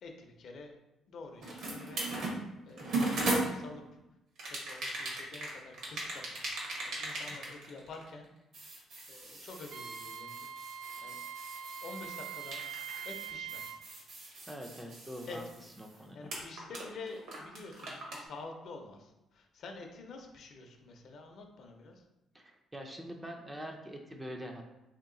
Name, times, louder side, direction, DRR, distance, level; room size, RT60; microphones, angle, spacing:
voice 1, 0.0-0.8 1.1-2.0 2.7-4.0 4.5-6.5 6.8-8.3 9.1-10.5 11.0-11.2 11.8-12.6 13.0-13.8 15.3-15.4 15.9-22.0, left 3 dB, 55° left, 3 dB, 0.6 m, -48 dB
sound 1, 1.4-3.9 4.4-8.2 8.5-16.0 16.3-18.2, right 2 dB, 65° right, 1.0 m, -38 dB
Wind instrument woodwind instrument, 9.7-13.8, right 8 dB, 90° right, 0.3 m, -43 dB
voice 2, 14.5-15.4 15.8-16.3 22.3-24.6, equal, 10° right, 2 dB, 0.4 m, -44 dB
3.0 x 2.8 x 3.7 m, 0.94 s
cardioid pair, 145°, 0 cm